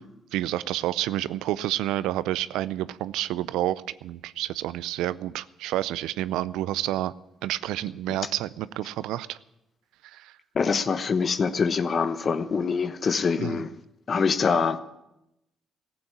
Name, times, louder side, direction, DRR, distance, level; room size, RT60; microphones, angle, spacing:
voice 1, 0.3-7.1 7.4-9.4 10.0-10.4 13.4-13.6, right 14 dB, 85° right, 0.4 m, -29 dB
voice 2, 10.5-13.7 14.1-14.8, left 5 dB, 50° left, 1.0 m, -24 dB
14.5 x 8.7 x 10.0 m
supercardioid pair, 60°, 0 cm